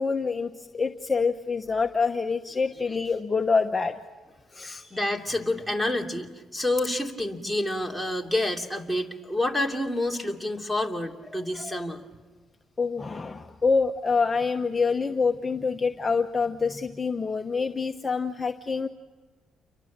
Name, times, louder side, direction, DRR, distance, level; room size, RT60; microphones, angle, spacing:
voice 1, 0.0-4.0 4.5-4.8 11.3-11.9 12.8-18.9, left 4 dB, 25° left, 5 dB, 1.0 m, -26 dB
voice 2, 4.6-12.0, left 1 dB, 5° right, 4 dB, 2.8 m, -28 dB
29.0 x 24.0 x 7.5 m, 1.3 s
cardioid pair, 90°, 0 cm